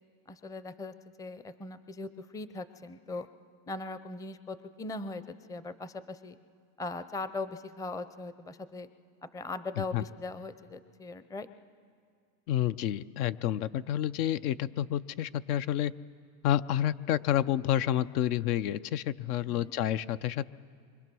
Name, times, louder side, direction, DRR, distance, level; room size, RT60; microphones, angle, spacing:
voice 1, 0.3-3.3 3.7-5.2 5.5-6.4 6.8-8.9 9.2-11.5 19.5-19.7, left 3 dB, 10° left, 12 dB, 0.5 m, -40 dB
voice 2, 12.5-15.9 16.4-20.5, left 11 dB, 70° left, 13 dB, 0.7 m, -29 dB
25.0 x 24.5 x 6.2 m, 2.1 s
supercardioid pair, 110°, 47 cm